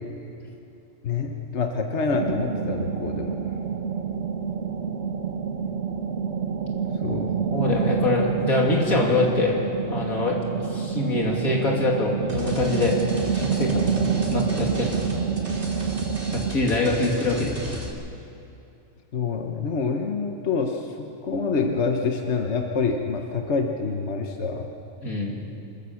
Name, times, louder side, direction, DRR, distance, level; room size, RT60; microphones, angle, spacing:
voice 1, 1.0-3.5 6.9-7.3 19.1-24.7, left 4 dB, 55° left, 3 dB, 1.5 m, -27 dB
sound 1, 2.1-16.5, right 6 dB, 55° right, 1.4 m, -28 dB
voice 2, 7.5-9.5 9.9-10.4 10.7-13.9 14.3-15.0 16.3-17.7 25.0-25.4, left 2 dB, 85° left, -1 dB, 3.3 m, -24 dB
sound 2, 12.3-17.9, equal, 40° right, 2.7 m, -35 dB
26.0 x 14.0 x 7.1 m, 2.7 s
omnidirectional pair, 1.5 m